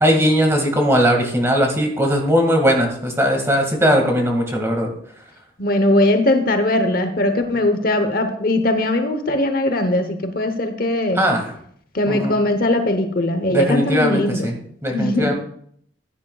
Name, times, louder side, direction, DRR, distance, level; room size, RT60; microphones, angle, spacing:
voice 1, 0.0-4.9 11.2-11.5 12.1-12.3 13.5-14.6 14.8-15.3, equal, 15° right, 2 dB, 1.9 m, -19 dB
voice 2, 5.6-11.3 11.9-14.5 14.9-15.3, left 1 dB, 50° left, 8 dB, 0.9 m, -20 dB
15.5 x 9.8 x 2.3 m, 0.66 s
head